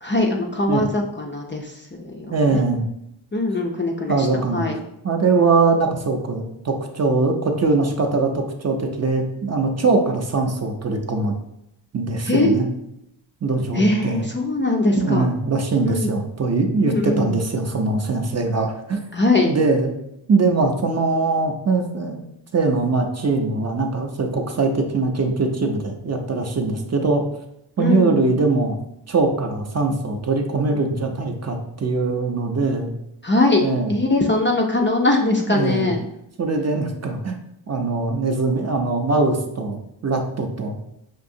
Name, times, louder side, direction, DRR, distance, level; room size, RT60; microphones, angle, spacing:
voice 1, 0.0-2.7 3.3-4.3 4.5-4.8 12.2-12.6 13.7-15.3 15.8-16.1 16.8-17.3 19.1-19.5 27.8-28.3 33.2-36.0, left 2 dB, 25° left, 0 dB, 0.4 m, -21 dB
voice 2, 2.3-2.9 4.1-4.7 5.0-11.3 11.9-12.7 13.4-14.3 15.0-19.0 19.5-19.9 20.3-22.2 22.5-27.2 27.8-28.8 29.1-32.9 33.6-33.9 35.5-35.9 36.4-37.4 37.7-40.8, right 3 dB, 35° right, 4 dB, 0.5 m, -21 dB
5.8 x 2.7 x 2.6 m, 0.81 s
wide cardioid pair, 145°, 46 cm